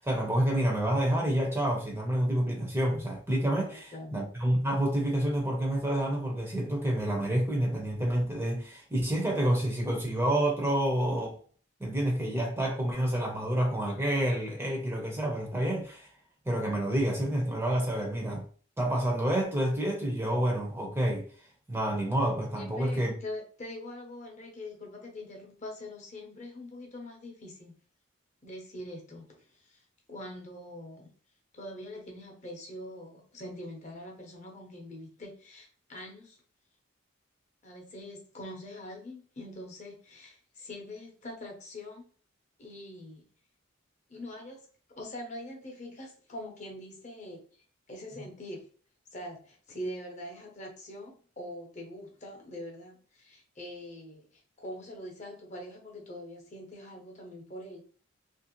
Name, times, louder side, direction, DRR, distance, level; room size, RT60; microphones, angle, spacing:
voice 1, 0.0-11.4 11.8-16.1 16.5-18.4 18.8-21.2 21.7-23.1, right 1 dB, 10° right, 0.6 m, -28 dB
voice 2, 3.6-4.2 22.5-27.7 28.4-29.8 30.1-31.1 31.5-36.4 37.6-42.1 42.6-43.2 44.1-44.6 45.0-47.4 47.9-48.7 49.1-57.8, left 1 dB, 35° left, 0.7 m, -43 dB
2.9 x 2.5 x 2.9 m
head